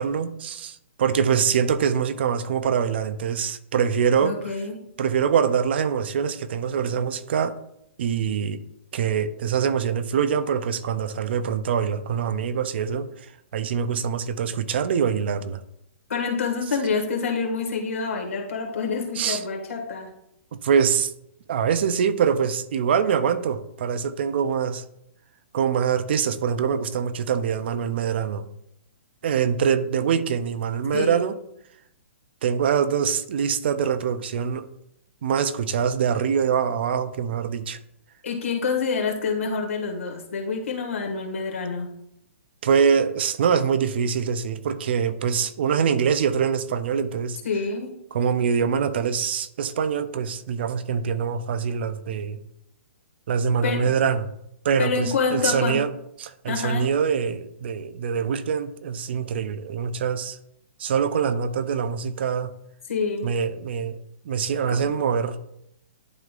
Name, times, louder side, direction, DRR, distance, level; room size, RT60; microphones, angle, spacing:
voice 1, 0.0-4.5 5.0-7.6 8.0-8.6 8.9-15.6 19.2-19.4 20.5-21.1 21.5-24.8 25.5-28.5 29.2-31.3 32.4-34.7 35.2-37.8 42.6-47.4 48.1-52.4 53.3-54.3 54.6-55.9 56.2-60.4 60.8-62.5 63.2-64.0 64.2-65.4, right 7 dB, 55° right, 13 dB, 0.5 m, -24 dB
voice 2, 4.2-4.8 16.1-20.1 30.9-31.3 38.2-41.9 47.4-48.0 53.6-53.9 54.8-55.9 56.5-56.9 62.9-63.3 64.7-64.8, left 5 dB, 90° left, 2 dB, 1.7 m, -27 dB
11.0 x 3.8 x 2.5 m, 0.77 s
hypercardioid pair, 160°, 7 cm